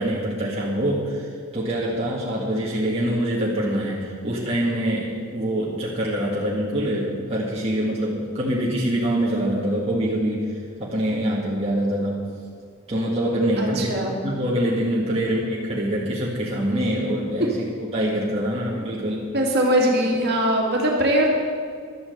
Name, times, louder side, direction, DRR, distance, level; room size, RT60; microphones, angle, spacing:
voice 1, 0.0-10.5 10.8-12.2 12.9-13.9 14.2-17.7 17.9-19.3, right 1 dB, 25° right, -6 dB, 1.9 m, -24 dB
voice 2, 13.6-14.2 15.1-15.2 19.3-21.3, right 1 dB, 45° right, -2 dB, 2.5 m, -21 dB
12.5 x 8.6 x 8.0 m, 2.1 s
head